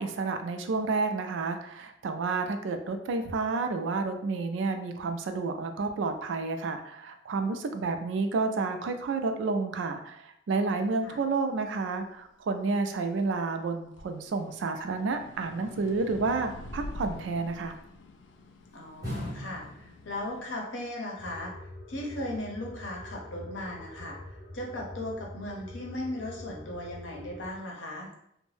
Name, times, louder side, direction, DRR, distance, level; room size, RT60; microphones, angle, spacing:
voice 1, 0.0-17.8, right 3 dB, 85° right, 7 dB, 0.4 m, -30 dB
sound 1, 10.8-13.4 13.8-20.5, left 1 dB, 70° left, 0.3 m, -47 dB
sound 2, 16.1-17.8 19.0-20.6 20.8-20.9, left 1 dB, 20° right, 1.0 m, -41 dB
voice 2, 18.7-21.5 21.9-28.1, left 1 dB, 90° left, -1 dB, 0.7 m, -37 dB
sound 3, 21.2-27.5, left 1 dB, ahead, 1.2 m, -45 dB
2.6 x 2.1 x 3.2 m, 0.75 s
head